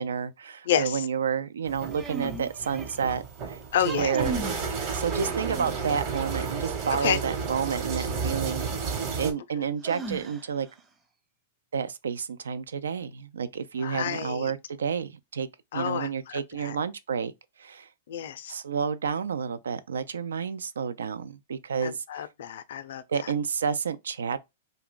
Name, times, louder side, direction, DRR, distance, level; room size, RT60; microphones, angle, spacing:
voice 1, 0.0-3.6 3.8-4.3 4.9-8.7 9.2-10.7 11.7-15.5 15.7-17.3 17.6-17.9 18.5-22.3 23.1-24.4, right 6 dB, 85° right, 0.4 m, -30 dB
voice 2, 0.7-1.1 3.7-4.1 7.0-7.2 9.6-9.7 13.8-14.5 15.7-16.8 18.1-18.5 21.8-23.3, left 10 dB, 65° left, 0.4 m, -30 dB
sound 1, 1.6-9.3, right 5 dB, 45° right, 1.1 m, -32 dB
sound 2, 1.9-3.1 3.7-4.6 5.0-6.0 7.9-8.0 9.8-10.7, right 3 dB, 20° right, 0.6 m, -36 dB
2.5 x 2.2 x 3.6 m
hypercardioid pair, 120°, 0 cm